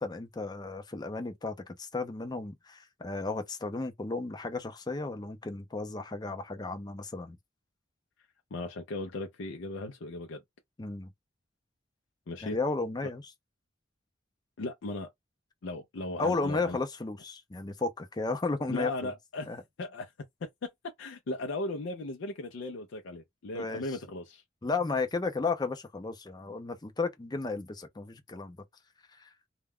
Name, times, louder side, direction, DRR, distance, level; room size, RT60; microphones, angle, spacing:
voice 1, 0.0-7.4 10.8-11.1 12.4-13.2 16.2-19.1 19.5-19.6 23.5-23.8 24.6-28.6 29.2-29.3, left 3 dB, 20° left, 0.5 m, -34 dB
voice 2, 8.5-10.4 12.3-12.6 14.6-15.1 15.6-16.8 18.7-19.5 19.8-20.1 20.4-20.7 21.0-24.4, left 2 dB, 75° left, 0.5 m, -37 dB
2.2 x 2.2 x 3.4 m
head